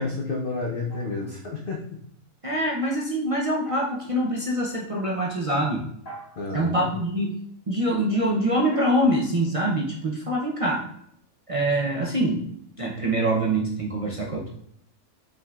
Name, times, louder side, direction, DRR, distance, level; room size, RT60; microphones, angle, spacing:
voice 1, 0.0-1.8 6.4-6.9, left 3 dB, 55° left, 0 dB, 0.6 m, -30 dB
sound 1, 0.9-2.0 3.7-4.3 6.1-6.7 8.7-10.5, right 2 dB, 40° left, 2.1 m, -46 dB
voice 2, 2.4-5.8 6.5-7.3 7.7-10.8 11.5-12.4 12.8-14.5, right 1 dB, 55° right, -4 dB, 0.3 m, -24 dB
5.6 x 3.6 x 2.4 m, 0.69 s
omnidirectional pair, 1.6 m